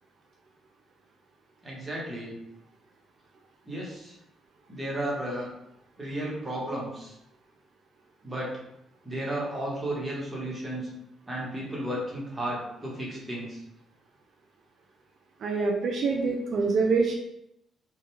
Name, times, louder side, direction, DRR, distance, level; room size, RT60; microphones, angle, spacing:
voice 1, 1.6-2.3 3.7-4.1 4.7-5.5 6.0-7.1 8.2-8.5 9.0-10.9 11.3-13.6, right 1 dB, 15° right, -4 dB, 1.0 m, -33 dB
voice 2, 15.4-17.2, right 4 dB, 60° right, 0 dB, 0.3 m, -25 dB
2.3 x 2.2 x 3.0 m, 0.79 s
cardioid pair, 90°, 0 cm